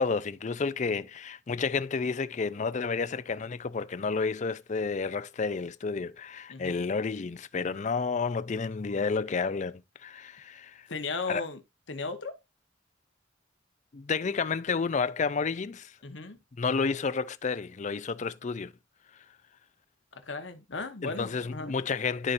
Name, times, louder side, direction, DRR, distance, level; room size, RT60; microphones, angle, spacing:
voice 1, 0.0-10.9 11.3-11.4 13.9-15.9 16.6-18.7 21.0-22.3, left 4 dB, 40° left, 0.4 m, -30 dB
voice 2, 6.5-6.8 10.9-11.6 11.9-12.4 16.0-16.4 20.1-21.7, left 3 dB, 70° left, 1.2 m, -36 dB
13.0 x 4.3 x 2.6 m
head